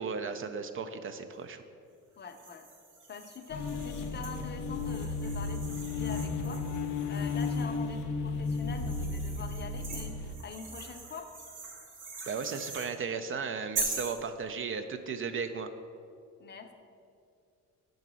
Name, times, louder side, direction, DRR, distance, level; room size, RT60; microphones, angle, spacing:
voice 1, 0.0-1.6 12.3-15.7, right 5 dB, 45° right, 9 dB, 0.4 m, -35 dB
voice 2, 2.2-2.7 3.1-11.3 16.4-16.7, left 5 dB, 35° left, 6 dB, 0.6 m, -44 dB
sound 1, 2.2-7.8 8.4-12.9 13.7-14.2, right 3 dB, 85° right, 1.3 m, -42 dB
sound 2, 3.5-10.4, left 4 dB, 85° left, 0.6 m, -34 dB
5.8 x 3.9 x 6.0 m, 2.4 s
cardioid pair, 90°, 30 cm